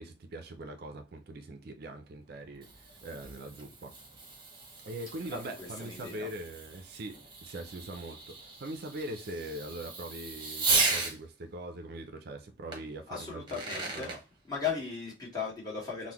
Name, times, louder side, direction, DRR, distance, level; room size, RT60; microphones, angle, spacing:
voice 1, 0.0-4.0 4.8-14.2, right 1 dB, 55° right, 0.4 m, -42 dB
Fireworks, 2.3-11.2 12.7-12.8 13.3-14.2, right 3 dB, 25° right, 0.8 m, -36 dB
voice 2, 5.3-6.3 13.1-14.1 14.5-16.1, left 6 dB, 20° left, 1.5 m, -37 dB
3.7 x 2.1 x 2.9 m
head